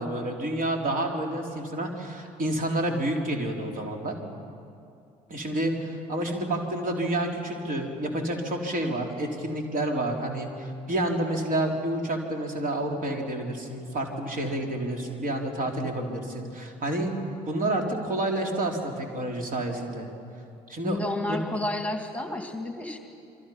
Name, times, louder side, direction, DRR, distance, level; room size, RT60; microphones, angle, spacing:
voice 1, 0.0-4.1 5.3-17.1 17.5-20.1 20.7-21.0 21.3-21.4, right 1 dB, 45° right, 1 dB, 4.1 m, -29 dB
voice 2, 20.8-23.0, left 2 dB, 5° left, 4 dB, 2.4 m, -31 dB
28.0 x 23.5 x 5.8 m, 2.5 s
figure-of-eight pair, 50°, 20 cm